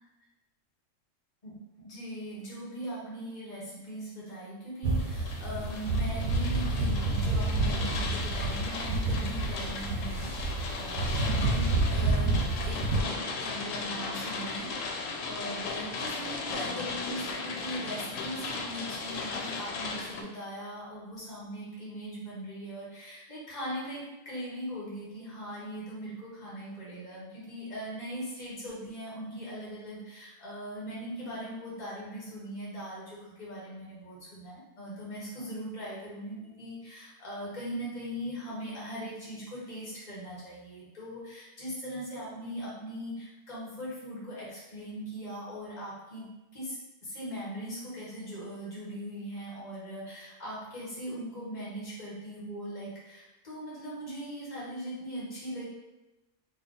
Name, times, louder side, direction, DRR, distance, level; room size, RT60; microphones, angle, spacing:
voice 1, 1.8-15.0 15.2-46.3 46.5-55.6, equal, 35° left, -7 dB, 1.4 m, -40 dB
sound 1, 4.8-13.0, right 2 dB, 75° right, 0.9 m, -29 dB
sound 2, 5.0-20.2, left 4 dB, 90° left, 0.9 m, -37 dB
3.4 x 2.4 x 3.8 m, 1.0 s
omnidirectional pair, 1.3 m